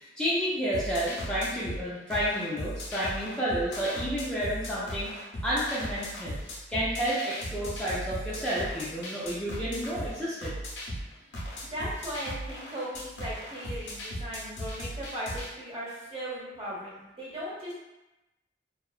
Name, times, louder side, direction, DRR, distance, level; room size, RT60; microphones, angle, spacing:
voice 1, 0.2-5.1 5.4-6.4 6.7-10.5, equal, 5° left, -10 dB, 0.4 m, -30 dB
sound 1, 0.7-15.5, equal, 80° left, 0.6 m, -37 dB
voice 2, 11.6-17.7, equal, 35° right, -8 dB, 1.0 m, -37 dB
2.7 x 2.2 x 2.4 m, 0.99 s
head